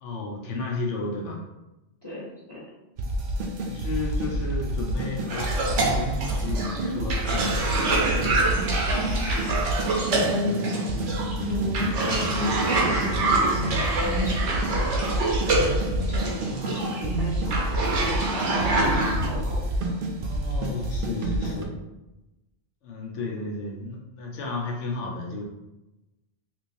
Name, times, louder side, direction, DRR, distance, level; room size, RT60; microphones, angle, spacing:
voice 1, 0.0-1.4 3.6-8.5 20.2-21.7 22.8-25.4, left 3 dB, 90° left, -2 dB, 1.1 m, -33 dB
voice 2, 2.0-2.6 10.0-10.7 11.4-15.1 15.6-20.0 21.4-21.6, left 3 dB, 25° left, -6 dB, 0.9 m, -35 dB
sound 1, 3.0-21.6, right 1 dB, 60° right, 0.6 m, -29 dB
Cough, 5.3-19.3, right 2 dB, 90° right, 1.0 m, -26 dB
3.5 x 3.1 x 2.6 m, 0.99 s
omnidirectional pair, 1.2 m